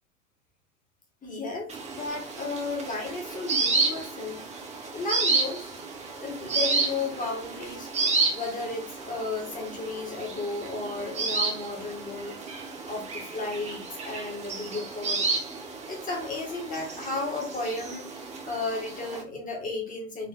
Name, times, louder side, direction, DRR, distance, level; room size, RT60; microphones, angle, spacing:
voice 1, 1.2-4.4 4.9-5.7 6.2-12.4 12.9-15.2 15.9-20.3, left 3 dB, 20° left, -1 dB, 1.5 m, -34 dB
sound 1, 1.7-19.2, right 4 dB, 15° right, 0.6 m, -31 dB
4.2 x 2.9 x 2.5 m, 0.34 s
figure-of-eight pair, 95°, 43 cm